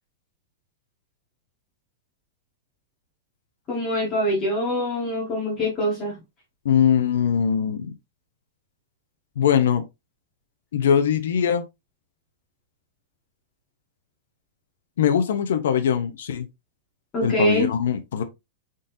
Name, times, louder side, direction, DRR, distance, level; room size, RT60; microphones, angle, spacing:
voice 1, 3.7-6.1 17.1-17.7, equal, 20° left, 1.5 m, -24 dB
voice 2, 6.6-7.9 9.4-9.8 10.7-11.6 15.0-16.5 17.2-18.2, left 8 dB, 80° left, 0.6 m, -21 dB
3.9 x 3.8 x 2.6 m
supercardioid pair, 175°, 0 cm